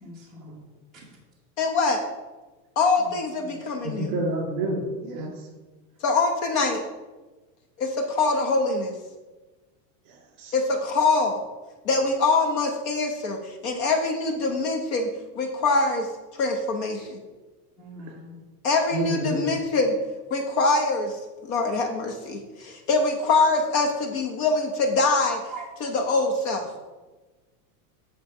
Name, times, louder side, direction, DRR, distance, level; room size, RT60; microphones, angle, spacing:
voice 1, 0.0-0.6 3.0-3.1 3.5-3.6 5.2-5.3 17.8-18.4 25.5-25.6, right 2 dB, ahead, -9 dB, 1.1 m, -42 dB
voice 2, 1.6-2.0 2.8-4.1 6.0-6.8 7.8-8.9 10.5-11.4 11.8-15.1 15.4-16.1 16.3-17.2 18.6-20.0 20.3-25.4 25.8-26.7, left 3 dB, 45° left, 4 dB, 1.0 m, -24 dB
voice 3, 3.8-5.3 10.1-10.5 18.9-19.5, right 1 dB, 40° right, -1 dB, 2.8 m, -29 dB
9.1 x 3.4 x 6.6 m, 1.2 s
supercardioid pair, 165°, 49 cm